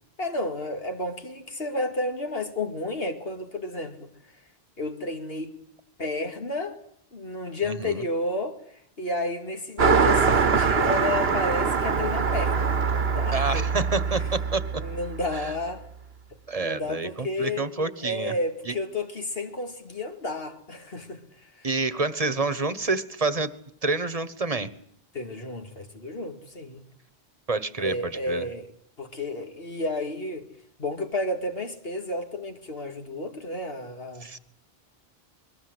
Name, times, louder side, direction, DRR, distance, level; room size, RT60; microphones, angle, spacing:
voice 1, 0.2-4.1 4.8-5.6 6.0-6.8 7.1-8.6 9.0-13.7 14.7-15.8 16.6-17.7 18.0-21.2 21.5-21.7 25.1-26.8 27.8-28.7 29.0-30.5 30.8-34.3, left 2 dB, 70° left, 2.5 m, -31 dB
voice 2, 7.6-8.0 13.3-14.8 15.3-15.5 16.5-18.3 18.6-18.8 21.6-23.5 23.8-24.7 27.5-28.5 34.2-34.4, right 3 dB, 35° right, 1.4 m, -28 dB
Car passing by, 9.8-15.6, right 5 dB, 75° right, 1.5 m, -24 dB
28.5 x 21.5 x 8.1 m
omnidirectional pair, 1.0 m